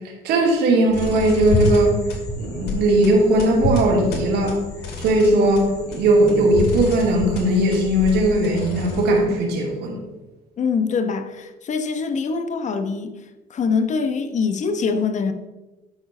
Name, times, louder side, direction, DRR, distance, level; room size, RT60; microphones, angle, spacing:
voice 1, 0.2-2.0 2.4-4.6 5.0-10.0, right 1 dB, 75° right, -1 dB, 2.6 m, -18 dB
sound 1, 0.9-9.3, left 2 dB, 75° left, 2.4 m, -28 dB
voice 2, 10.6-13.1 13.5-15.3, left 5 dB, 45° left, 8 dB, 1.0 m, -23 dB
11.5 x 4.7 x 5.4 m, 1.1 s
cardioid pair, 110°, 17 cm